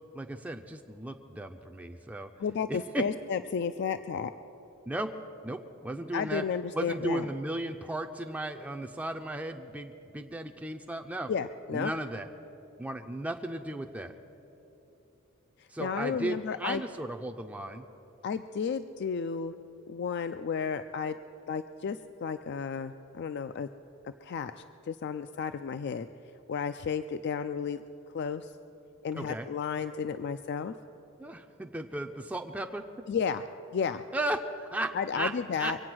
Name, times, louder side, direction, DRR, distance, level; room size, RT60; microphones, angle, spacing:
voice 1, 0.0-2.3 2.7-3.1 4.9-5.1 5.4-6.5 6.7-11.3 11.7-12.3 12.8-14.1 15.7-17.9 29.1-29.5 31.2-32.9 34.1-35.3 35.6-35.7, right 1 dB, 5° right, 4 dB, 0.4 m, -35 dB
voice 2, 2.4-4.3 6.1-7.3 11.3-11.9 15.6-16.8 18.2-19.5 19.9-21.2 21.5-23.7 24.0-26.1 26.5-27.8 28.1-28.5 29.0-30.7 33.1-33.4 33.7-34.0 34.9-35.8, left 6 dB, 55° left, 10 dB, 0.3 m, -33 dB
23.5 x 8.6 x 6.1 m, 3.0 s
head